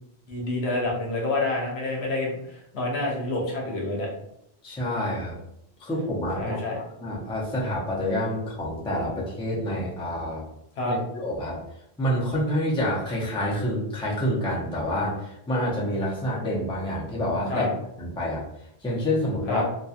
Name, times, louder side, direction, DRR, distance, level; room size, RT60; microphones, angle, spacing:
voice 1, 0.3-4.1 6.3-6.8 10.8-11.0 17.5-17.7 19.5-19.6, left 2 dB, 80° left, -2 dB, 1.0 m, -28 dB
voice 2, 4.6-5.4 5.8-6.6 7.0-10.4 10.9-11.6 12.0-17.7 18.0-18.4 18.8-19.7, equal, 5° left, -5 dB, 0.4 m, -27 dB
2.8 x 2.3 x 2.4 m, 0.78 s
omnidirectional pair, 1.1 m